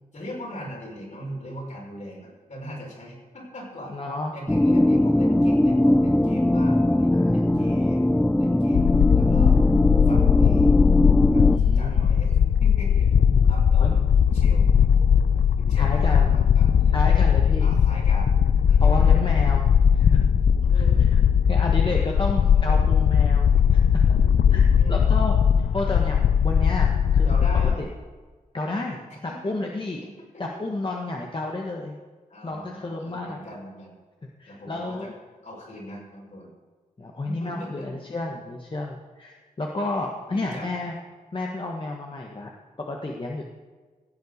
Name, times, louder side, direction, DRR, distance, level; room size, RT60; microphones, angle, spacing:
voice 1, 0.1-3.9 4.3-9.6 10.0-10.9 11.3-14.8 15.6-17.0 17.4-19.1 20.6-21.1 22.3-22.9 24.8-25.1 25.7-25.9 27.3-27.8 29.3-29.7 30.0-30.4 32.3-33.9 34.5-35.1 35.4-36.5 37.2-37.9 40.3-40.8, equal, 60° left, -2 dB, 5.5 m, -40 dB
voice 2, 3.9-4.3 7.1-7.7 11.5-12.1 13.8-14.0 15.8-16.4 16.9-17.7 18.8-19.7 19.9-20.2 20.7-20.8 21.1-21.2 21.5-23.8 24.5-27.9 28.5-29.0 29.4-30.0 30.4-31.9 32.4-33.4 34.4-35.1 37.0-41.0 41.3-42.5 42.8-43.5, left 2 dB, 35° left, 0 dB, 1.5 m, -31 dB
sound 1, 4.5-11.6, left 1 dB, 10° left, 0.5 m, -20 dB
sound 2, 8.7-27.7, left 7 dB, 80° left, 0.5 m, -19 dB
16.0 x 8.1 x 6.5 m, 1.4 s
wide cardioid pair, 80°, 14 cm